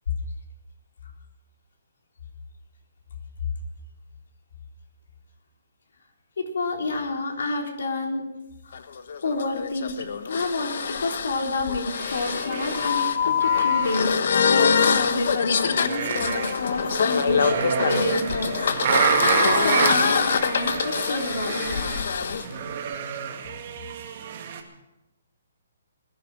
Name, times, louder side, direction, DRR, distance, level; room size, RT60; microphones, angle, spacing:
voice 1, 6.4-8.2 8.6-8.9 9.2-17.6 17.9-21.9, left 2 dB, 75° left, 2 dB, 3.8 m, -29 dB
sound 1, 8.7-22.4, left 6 dB, 55° left, 1.2 m, -24 dB
sound 2, 11.9-14.2 14.5-15.4 15.7-24.6, right 7 dB, 35° right, 2.0 m, -29 dB
20.5 x 11.0 x 6.3 m, 0.97 s
hypercardioid pair, 170°, 0 cm